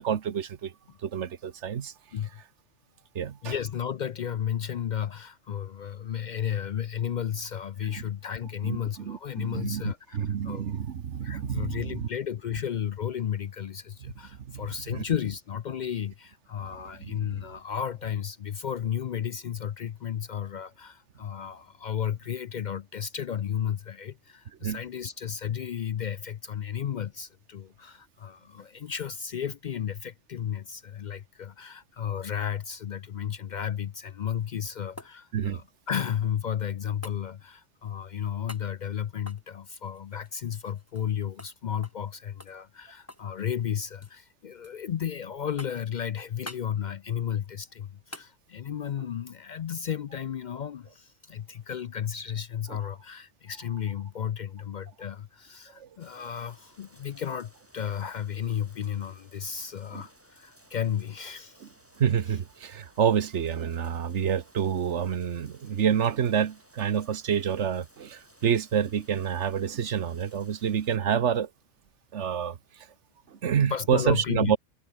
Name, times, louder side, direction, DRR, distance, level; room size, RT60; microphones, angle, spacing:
voice 1, 0.0-0.7 1.0-1.9 3.1-3.5 8.6-12.1 14.4-14.6 14.9-15.0 24.6-24.8 35.3-35.6 55.8-55.9 59.9-60.0 62.0-71.5 72.1-72.6 73.3-74.6, right 8 dB, 90° right, 1.3 m, -28 dB
voice 2, 3.4-10.7 11.2-61.7 73.7-74.5, left 9 dB, 55° left, 0.5 m, -33 dB
sound 1, 34.3-36.4 37.0-37.2 38.5-38.7 39.2-41.1 41.4-41.5 41.8-42.1 42.4-43.3 43.6-44.2 44.6-45.1 45.6-45.9 46.4-46.7 48.1-48.3 50.7-50.8, left 1 dB, 15° left, 1.6 m, -47 dB
sound 2, 56.0-71.0, right 1 dB, 10° right, 3.7 m, -59 dB
omnidirectional pair, 1.2 m